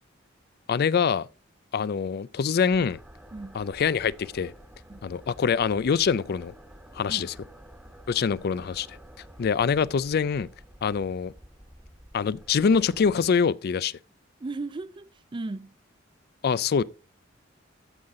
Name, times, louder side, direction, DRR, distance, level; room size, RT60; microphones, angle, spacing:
voice 1, 0.7-1.3 1.7-3.0 3.5-4.5 5.0-6.5 6.9-7.3 8.1-9.0 9.4-10.5 10.8-11.3 12.1-14.0 16.4-16.8, left 6 dB, 55° left, 0.4 m, -24 dB
sound 1, 2.7-13.2, equal, 5° right, 1.3 m, -50 dB
voice 2, 3.3-3.6 4.9-5.0 7.1-7.3 14.4-15.8, right 3 dB, 25° right, 0.4 m, -36 dB
14.0 x 5.6 x 3.7 m
head